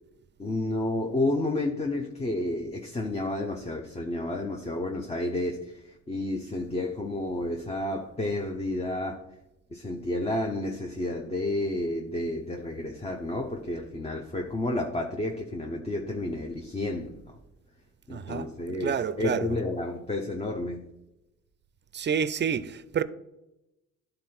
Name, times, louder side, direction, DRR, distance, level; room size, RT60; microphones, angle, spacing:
voice 1, 0.4-9.3 9.7-17.4 18.1-20.8, left 1 dB, 20° left, 0.8 m, -31 dB
voice 2, 18.1-18.5 18.8-19.5 21.9-23.0, right 7 dB, 35° right, 0.5 m, -28 dB
11.5 x 3.9 x 4.4 m
cardioid pair, 90°, 30 cm